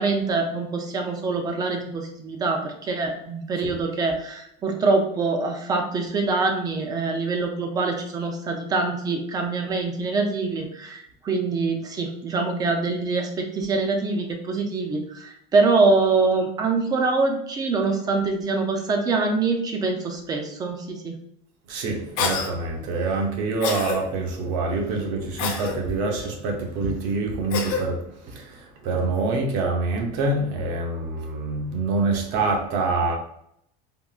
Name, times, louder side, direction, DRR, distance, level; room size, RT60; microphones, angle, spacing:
voice 1, 0.0-21.1, right 3 dB, 20° right, 0.3 m, -24 dB
voice 2, 21.7-33.2, right 3 dB, 60° right, 0.7 m, -26 dB
Cough, 22.2-22.5 23.6-24.0 25.4-25.8 27.5-27.8, left 5 dB, 55° left, 0.6 m, -26 dB
3.6 x 2.0 x 2.3 m
cardioid pair, 155°, 20 cm